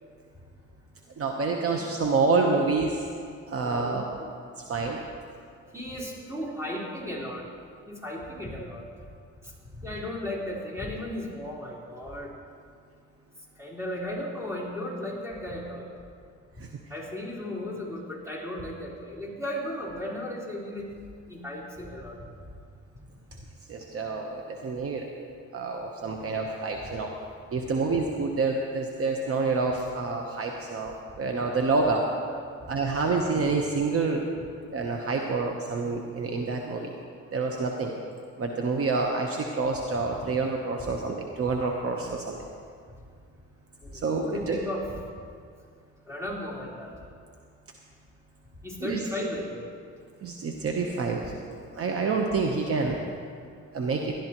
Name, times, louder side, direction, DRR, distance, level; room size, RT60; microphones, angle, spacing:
voice 1, 1.2-3.0 3.5-4.3 4.7-5.0 16.6-16.7 23.7-25.1 25.5-27.1 27.5-32.0 32.7-34.2 34.7-36.9 37.3-37.9 38.4-42.5 44.0-44.7 48.8-49.3 50.2-53.0 53.7-54.1, right 4 dB, 50° right, 2 dB, 1.0 m, -28 dB
voice 2, 3.6-4.0 5.7-7.4 7.9-8.8 9.8-12.3 13.6-15.9 16.9-20.9 21.3-22.2 32.2-32.5 36.7-37.0 43.8-44.9 46.1-47.0 48.6-49.7, left 1 dB, 10° right, -5 dB, 3.9 m, -35 dB
19.0 x 12.0 x 3.0 m, 2.2 s
cardioid pair, 90°, 30 cm